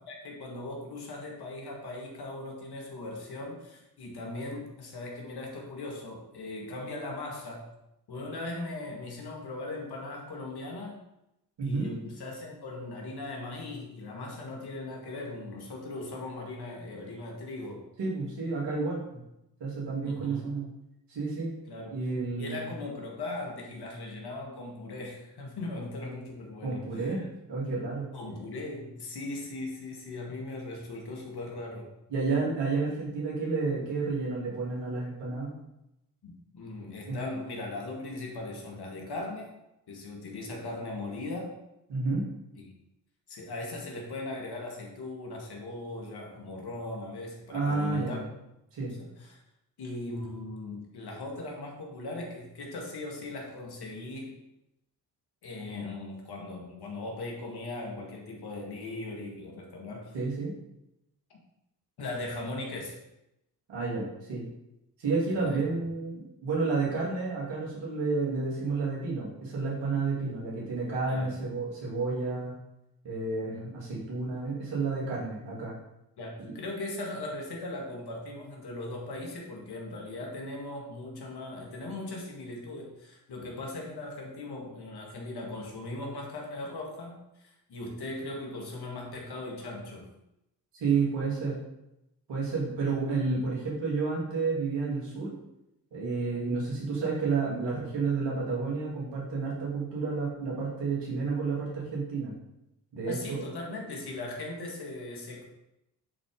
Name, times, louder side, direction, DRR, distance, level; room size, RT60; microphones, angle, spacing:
voice 1, 0.0-7.7 8.1-11.0 11.6-17.8 20.0-20.5 21.7-22.0 22.4-27.3 28.1-31.9 36.2-39.5 39.9-41.5 42.6-42.7 43.3-48.2 49.0-49.4 49.8-54.4 55.4-60.2 61.3-61.4 62.0-63.0 65.3-65.6 71.0-71.4 73.5-73.6 76.2-90.1 103.1-105.5, left 2 dB, 65° left, 0 dB, 2.1 m, -39 dB
voice 2, 11.6-11.9 18.0-19.2 19.6-20.7 21.1-21.5 21.9-22.7 26.6-28.1 32.1-35.5 37.1-37.2 41.9-42.2 47.5-48.2 48.7-49.0 60.1-60.5 63.7-64.4 65.0-72.5 73.0-75.7 76.4-76.5 90.7-91.6 92.3-95.3 95.9-102.3 102.9-103.4, right 4 dB, 75° right, -5 dB, 3.1 m, -30 dB
9.9 x 4.4 x 3.8 m, 0.87 s
supercardioid pair, 45°, 42 cm